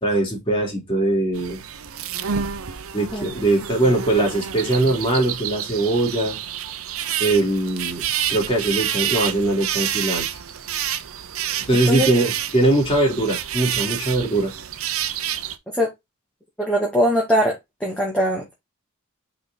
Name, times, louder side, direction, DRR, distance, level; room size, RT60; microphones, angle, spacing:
voice 1, 0.0-1.6 2.9-6.4 7.2-8.0 8.3-10.3 11.7-14.5, right 2 dB, 25° left, 4.0 m, -21 dB
sound 1, 1.3-15.6, right 10 dB, 75° right, 0.8 m, -28 dB
voice 2, 16.6-18.5, equal, 5° left, 2.3 m, -21 dB
5.7 x 5.5 x 4.1 m
head